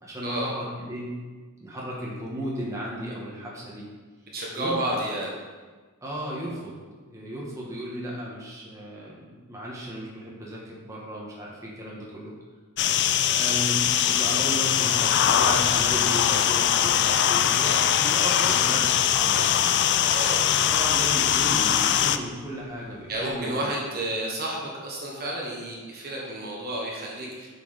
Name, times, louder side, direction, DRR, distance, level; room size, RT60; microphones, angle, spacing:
voice 1, 0.0-1.1 1.6-3.9 4.5-4.8 6.0-6.7 7.1-12.3 13.1-19.5 20.7-23.7, equal, 15° right, -5 dB, 1.5 m, -34 dB
voice 2, 4.3-5.3 20.1-20.6 23.1-27.5, right 1 dB, 45° right, -3 dB, 1.4 m, -31 dB
sound 1, 12.8-22.2, left 10 dB, 50° left, 0.4 m, -22 dB
Thunder / Rain, 15.0-23.4, left 1 dB, 30° left, 2.5 m, -47 dB
7.8 x 5.7 x 4.1 m, 1.4 s
head